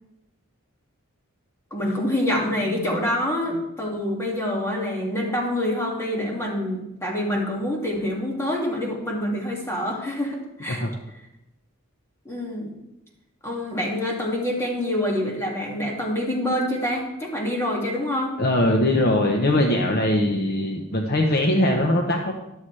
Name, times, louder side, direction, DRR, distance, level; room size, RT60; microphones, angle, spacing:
voice 1, 1.7-10.9 12.2-12.7 13.4-18.3, left 1 dB, 10° left, -2 dB, 2.3 m, -26 dB
voice 2, 18.4-22.3, left 1 dB, 45° left, 2 dB, 1.0 m, -21 dB
13.0 x 11.5 x 3.3 m, 0.88 s
head